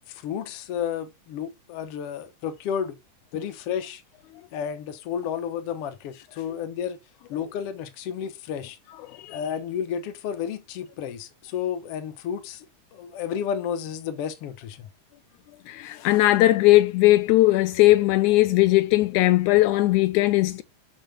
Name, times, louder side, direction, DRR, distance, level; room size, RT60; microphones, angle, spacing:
voice 1, 0.1-3.0 3.3-4.0 4.5-7.0 7.3-8.8 9.3-12.7 12.9-14.9, left 8 dB, 60° left, 1.8 m, -31 dB
voice 2, 15.7-20.6, left 17 dB, 80° left, 2.0 m, -19 dB
6.8 x 5.7 x 5.0 m
omnidirectional pair, 3.5 m